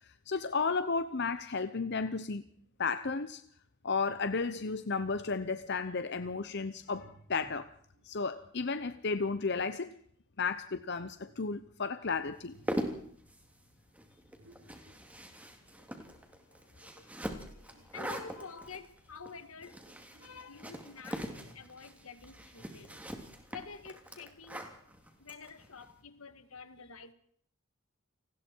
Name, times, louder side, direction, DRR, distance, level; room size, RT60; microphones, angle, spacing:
voice 1, 0.3-2.4 2.8-3.4 3.8-7.7 8.0-9.9 10.4-12.5, left 4 dB, 50° left, 0.9 m, -33 dB
sound 1, 5.0-5.8 6.8-8.1 8.9-9.8 11.0-11.9 12.3-13.1 14.4-15.1 16.0-16.3 17.4-18.6 19.4-20.6 21.2-22.0 22.6-23.4, right 1 dB, 75° right, 4.5 m, -61 dB
sound 2, 12.4-25.9, equal, 5° right, 3.0 m, -42 dB
voice 2, 16.5-16.9 17.9-19.8 20.2-23.0 23.5-24.7 25.2-27.1, left 5 dB, 75° left, 1.9 m, -49 dB
29.0 x 19.5 x 4.7 m
head